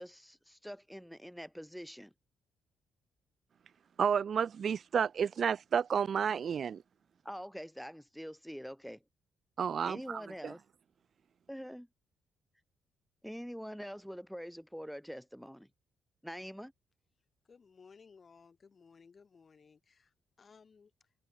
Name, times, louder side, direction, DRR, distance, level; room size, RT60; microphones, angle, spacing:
voice 1, 0.0-2.1 7.2-9.0 9.8-10.6 11.5-11.9 13.2-15.7 16.2-16.7, equal, ahead, 3.7 m, -45 dB
voice 2, 4.0-6.8 9.6-10.5, right 7 dB, 50° right, 0.6 m, -31 dB
voice 3, 17.4-21.1, left 5 dB, 40° left, 4.0 m, -60 dB
cardioid pair, 90°, 0 cm